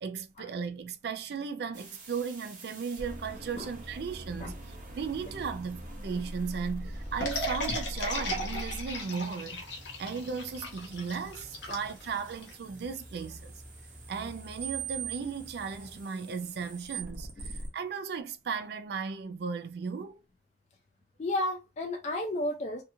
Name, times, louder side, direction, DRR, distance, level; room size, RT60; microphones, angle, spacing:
voice 1, 0.0-9.6 10.0-13.5 14.1-20.2, right 5 dB, 65° right, 0.4 m, -36 dB
sound 1, 1.7-17.7, right 2 dB, 45° right, 0.8 m, -43 dB
sound 2, 7.2-12.5, left 1 dB, 90° left, 0.9 m, -36 dB
sound 3, 9.0-16.0, equal, 10° right, 0.9 m, -51 dB
voice 2, 21.2-22.8, left 1 dB, 40° left, 0.3 m, -32 dB
2.7 x 2.4 x 2.6 m
head